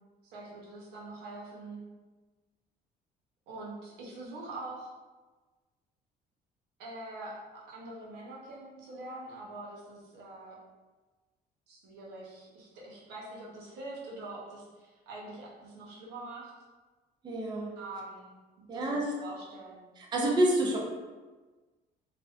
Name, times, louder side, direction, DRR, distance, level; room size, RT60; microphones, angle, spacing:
voice 1, 0.2-1.8 3.5-4.9 6.8-10.6 11.7-16.5 17.8-18.3 18.6-19.9, right 2 dB, 85° right, -5 dB, 0.7 m, -44 dB
voice 2, 17.2-17.7 18.7-19.1 20.0-20.8, right 1 dB, 25° right, -2 dB, 0.4 m, -28 dB
2.5 x 2.1 x 2.3 m, 1.3 s
cardioid pair, 110°, 17 cm